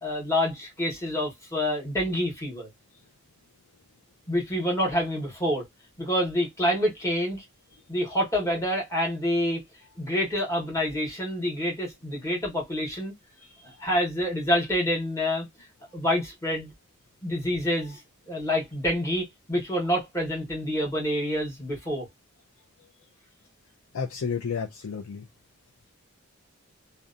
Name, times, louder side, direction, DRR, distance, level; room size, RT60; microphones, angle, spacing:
voice 1, 0.0-2.7 4.3-5.6 6.0-7.4 7.9-9.6 10.0-13.1 13.8-15.5 15.9-16.7 17.2-18.0 18.3-22.1, equal, 15° left, 1.1 m, -27 dB
voice 2, 13.4-13.9 23.9-25.2, left 6 dB, 75° left, 0.5 m, -32 dB
2.7 x 2.2 x 2.4 m
head